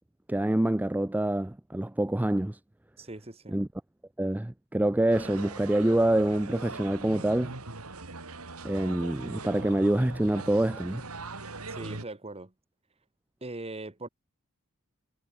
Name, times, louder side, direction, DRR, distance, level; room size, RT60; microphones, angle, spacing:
voice 1, 0.3-2.6 3.5-3.7 4.2-7.5 8.6-11.0, right 1 dB, 10° right, 0.4 m, -26 dB
voice 2, 3.0-3.6 11.7-12.5 13.4-14.1, right 2 dB, 30° right, 1.7 m, -40 dB
sound 1, 5.1-12.0, right 3 dB, 90° right, 3.4 m, -41 dB
head